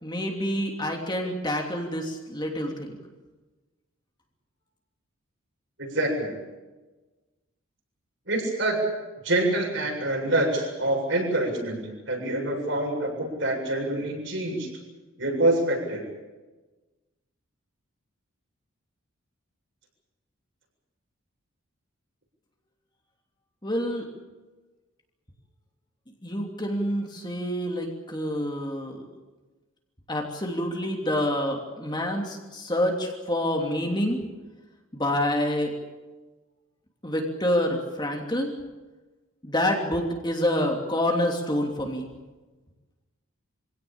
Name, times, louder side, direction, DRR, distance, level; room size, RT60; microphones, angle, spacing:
voice 1, 0.0-3.0 23.6-24.1 26.2-29.1 30.1-34.2 34.9-35.7 37.0-38.5 39.4-42.1, left 1 dB, 20° left, 1 dB, 3.0 m, -27 dB
voice 2, 5.8-6.4 8.3-8.9 9.2-14.7 15.2-16.0, right 1 dB, 60° right, 1 dB, 7.6 m, -26 dB
26.0 x 17.5 x 8.9 m, 1.2 s
head